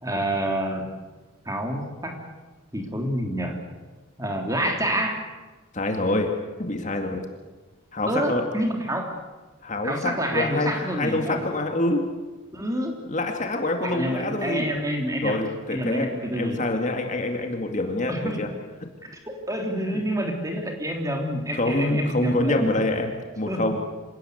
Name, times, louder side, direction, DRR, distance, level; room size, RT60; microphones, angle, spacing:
voice 1, 0.0-0.9 1.4-2.1 2.7-3.5 4.2-5.2 8.1-9.1 9.8-11.4 12.5-13.0 13.8-15.4 15.7-16.6 18.1-18.4 19.3-22.8 23.5-23.6, equal, 15° right, 2 dB, 3.3 m, -28 dB
voice 2, 5.7-6.3 6.6-7.2 7.9-8.4 9.6-12.0 13.1-14.7 15.2-16.1 16.3-18.5 19.9-20.0 21.5-23.8, left 2 dB, 35° left, 3 dB, 2.2 m, -26 dB
26.5 x 18.0 x 8.0 m, 1.2 s
head